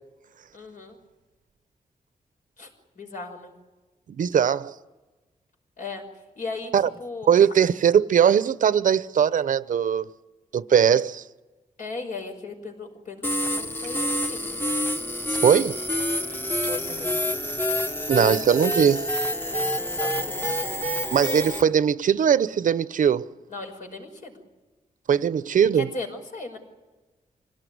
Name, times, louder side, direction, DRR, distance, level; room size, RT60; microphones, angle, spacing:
voice 1, 0.5-1.0 2.6-2.7 3.0-3.5 5.8-6.1 6.4-7.3 11.8-14.5 16.2-17.3 19.5-20.8 23.5-24.4 25.7-26.6, left 3 dB, 70° left, 5.6 m, -37 dB
voice 2, 4.1-4.7 6.7-6.9 7.3-10.1 10.5-11.2 15.3-15.8 18.1-19.1 21.1-23.3 25.1-25.9, right 8 dB, 70° right, 0.7 m, -20 dB
sound 1, 13.2-21.6, left 1 dB, 15° left, 1.1 m, -27 dB
26.0 x 18.0 x 9.5 m
wide cardioid pair, 130°, 14 cm